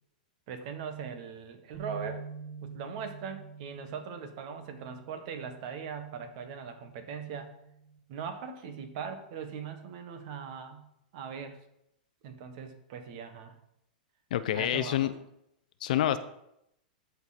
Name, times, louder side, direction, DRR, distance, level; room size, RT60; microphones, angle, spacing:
voice 1, 0.5-2.3 2.6-7.5 8.1-10.8 11.1-11.6 12.2-13.6 14.5-15.1, right 6 dB, 55° right, 8 dB, 1.4 m, -40 dB
sound 1, 1.7-8.0, right 5 dB, 5° left, 2.2 m, -47 dB
voice 2, 14.3-15.1 15.8-16.2, left 12 dB, 65° left, 13 dB, 0.6 m, -27 dB
12.0 x 4.6 x 4.2 m, 0.80 s
hypercardioid pair, 115°, 5 cm